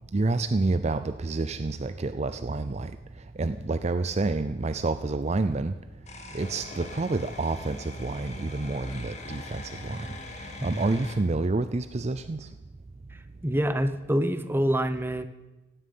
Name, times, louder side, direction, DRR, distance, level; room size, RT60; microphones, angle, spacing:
voice 1, 0.1-2.9 3.4-5.7 6.3-10.1 10.4-12.5, right 3 dB, 35° right, 11 dB, 0.5 m, -28 dB
sound 1, 6.1-11.2, left 2 dB, 35° left, 2.0 m, -42 dB
voice 2, 10.6-11.0 13.4-15.2, equal, 10° right, 10 dB, 0.9 m, -26 dB
16.5 x 9.0 x 9.5 m, 1.1 s
head